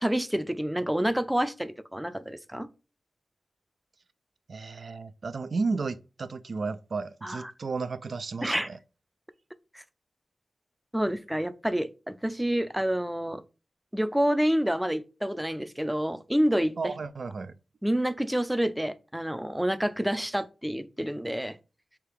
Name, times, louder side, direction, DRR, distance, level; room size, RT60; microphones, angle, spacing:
voice 1, 0.0-2.7 7.2-7.5 8.4-8.7 9.7-9.8 10.9-13.4 13.9-16.7 17.8-21.6, equal, 5° right, 0.4 m, -28 dB
voice 2, 4.5-8.8 16.8-17.5, right 4 dB, 70° right, 0.4 m, -33 dB
3.5 x 2.8 x 4.7 m
cardioid pair, 45°, 0 cm